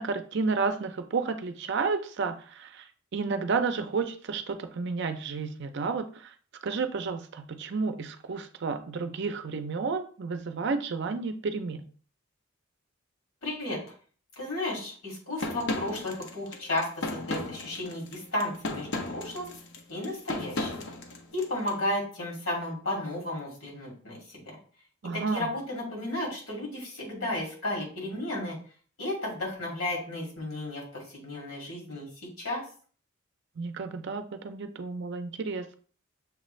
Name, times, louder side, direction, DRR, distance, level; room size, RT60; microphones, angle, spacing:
voice 1, 0.0-2.8 3.1-6.3 6.6-11.8 25.0-25.5 33.6-35.8, right 4 dB, 55° right, 8 dB, 0.5 m, -31 dB
voice 2, 13.4-13.8 14.4-19.5 19.9-20.8 21.3-24.6 25.1-28.6 29.0-32.1 32.4-32.6, left 1 dB, 90° left, -2 dB, 2.4 m, -33 dB
sound 1, 15.4-21.7, left 2 dB, 60° left, 0.7 m, -35 dB
6.7 x 2.5 x 3.1 m, 0.43 s
head